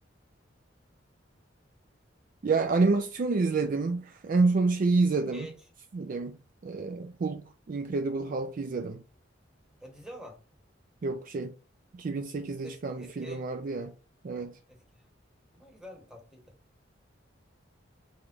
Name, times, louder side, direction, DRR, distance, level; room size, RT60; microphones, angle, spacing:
voice 1, 2.4-5.5 5.9-6.4 6.6-9.0 11.0-11.5 11.9-13.9 14.2-14.6, right 3 dB, 45° right, 0.4 m, -28 dB
voice 2, 9.8-10.4 12.6-13.5 14.7-15.1 15.5-16.6, right 1 dB, 5° right, 1.1 m, -47 dB
3.5 x 3.3 x 3.8 m
head